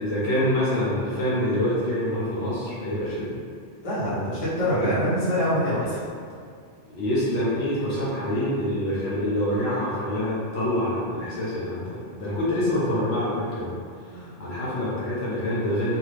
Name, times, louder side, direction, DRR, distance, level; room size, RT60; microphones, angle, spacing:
voice 1, 0.0-3.4 6.8-13.8 14.4-16.0, left 1 dB, 65° left, -9 dB, 1.0 m, -26 dB
voice 2, 3.8-6.0 14.1-14.4, equal, 35° left, -10 dB, 0.9 m, -25 dB
2.7 x 2.4 x 3.3 m, 2.1 s
omnidirectional pair, 1.2 m